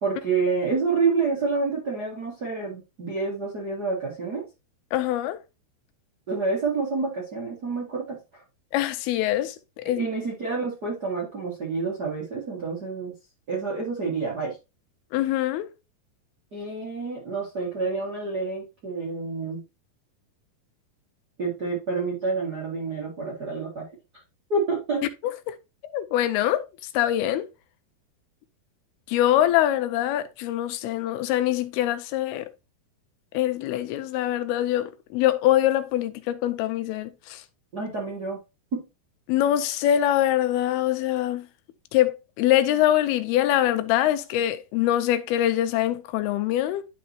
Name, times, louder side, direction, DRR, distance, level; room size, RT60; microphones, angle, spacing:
voice 1, 0.0-4.5 6.3-8.4 9.8-13.1 13.5-14.6 16.5-19.6 21.4-23.9 24.5-25.1 37.7-38.4 38.7-38.8, right 4 dB, 45° right, 1.2 m, -28 dB
voice 2, 4.9-5.4 8.7-10.0 15.1-15.7 25.5-25.6 25.9-26.7 26.9-27.5 29.1-32.5 33.3-37.4 39.3-41.5 41.9-46.8, left 12 dB, 80° left, 2.5 m, -24 dB
11.5 x 4.2 x 2.8 m
omnidirectional pair, 4.6 m